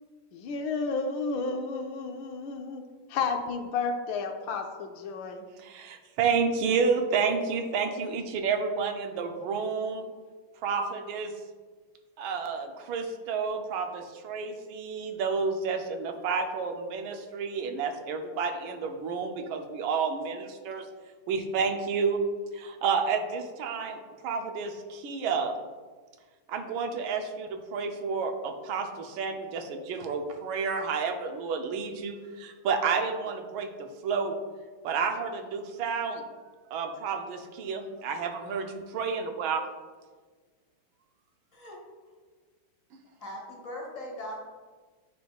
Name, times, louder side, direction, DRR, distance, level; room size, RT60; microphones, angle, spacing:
voice 1, 0.3-2.8 3.1-5.5, left 4 dB, 75° left, 4 dB, 1.3 m, -32 dB
voice 2, 5.6-10.1 10.6-11.3 12.2-20.9 21.3-22.2 22.5-25.5 26.5-34.4 34.8-36.2 36.7-39.6, right 5 dB, 80° right, 5 dB, 1.5 m, -30 dB
voice 3, 43.2-44.4, left 1 dB, 45° left, -1 dB, 1.4 m, -39 dB
9.4 x 5.0 x 2.3 m, 1.4 s
omnidirectional pair, 2.2 m